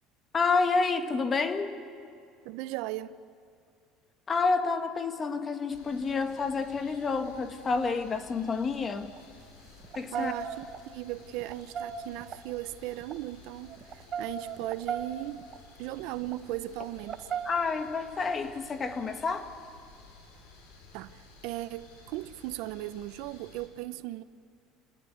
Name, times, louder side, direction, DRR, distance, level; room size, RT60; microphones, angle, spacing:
voice 1, 0.3-1.8 4.3-9.1 9.9-10.3 17.5-19.5, left 4 dB, 30° left, 1.8 m, -29 dB
voice 2, 2.4-3.1 10.1-15.5 15.8-17.3 20.9-24.2, right 16 dB, 75° right, 0.8 m, -37 dB
sound 1, 5.7-23.7, left 3 dB, 85° left, 6.1 m, -54 dB
sound 2, 9.2-9.3 9.8-10.8 11.4-12.4 13.0-13.2 13.7-15.6 16.2-16.4 17.0-17.6, right 7 dB, 40° right, 1.5 m, -36 dB
29.0 x 18.5 x 9.4 m
supercardioid pair, 115°, 0 cm